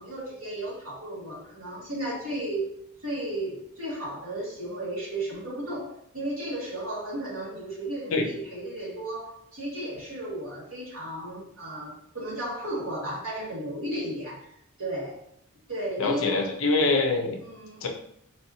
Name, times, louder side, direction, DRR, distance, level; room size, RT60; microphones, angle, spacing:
voice 1, 0.0-2.7 3.0-14.5 14.8-15.2 15.7-16.6 17.4-17.9, right 1 dB, 70° right, -6 dB, 1.4 m, -34 dB
voice 2, 16.0-17.4 17.8-17.9, left 3 dB, 60° left, 2 dB, 0.5 m, -24 dB
4.0 x 2.6 x 2.6 m, 0.70 s
head